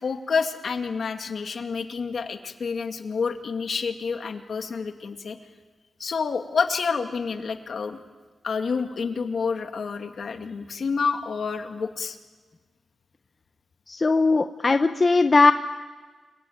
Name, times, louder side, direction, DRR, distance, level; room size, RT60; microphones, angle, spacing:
voice 1, 0.0-5.4 6.0-8.0 8.4-12.2, left 5 dB, 65° left, 5 dB, 2.3 m, -28 dB
voice 2, 13.9-15.5, left 3 dB, 35° left, 8 dB, 0.9 m, -19 dB
29.5 x 21.5 x 9.5 m, 1.4 s
wide cardioid pair, 105°, 0 cm